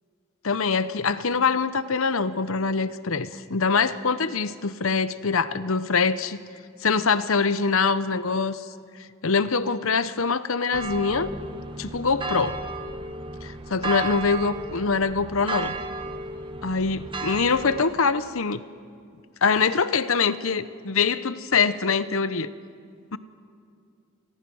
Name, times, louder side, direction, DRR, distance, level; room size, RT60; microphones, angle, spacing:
voice 1, 0.4-6.4 6.8-8.6 9.2-11.3 11.8-12.6 13.4-15.7 16.6-18.6 19.4-22.5 23.1-23.2, left 5 dB, 70° left, 14 dB, 0.8 m, -24 dB
sound 1, 10.7-17.8, right 3 dB, 25° right, 1.0 m, -33 dB
29.0 x 20.0 x 6.3 m, 2.3 s
head